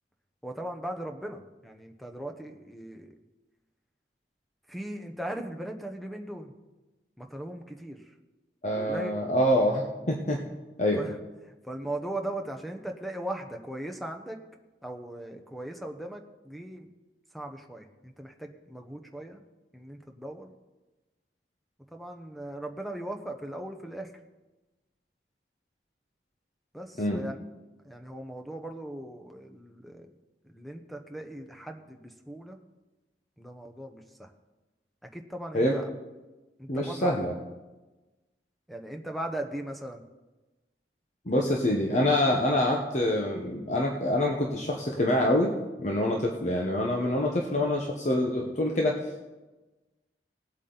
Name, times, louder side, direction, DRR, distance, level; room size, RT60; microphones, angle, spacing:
voice 1, 0.4-3.1 4.7-6.5 7.2-8.1 8.7-9.1 11.0-11.2 11.6-14.4 14.8-16.9 17.3-19.4 19.7-20.5 21.9-24.1 26.7-27.4 27.8-30.1 30.4-32.6 33.4-34.3 35.1-35.9 36.6-37.1 38.7-40.0 41.3-41.5, right 1 dB, ahead, 4 dB, 0.9 m, -38 dB
voice 2, 8.6-9.8 10.1-10.4 10.8-11.0 27.0-27.2 35.5-35.8 36.7-37.3 41.3-49.0, left 1 dB, 40° left, 0 dB, 1.0 m, -26 dB
19.0 x 8.2 x 4.0 m, 1.1 s
head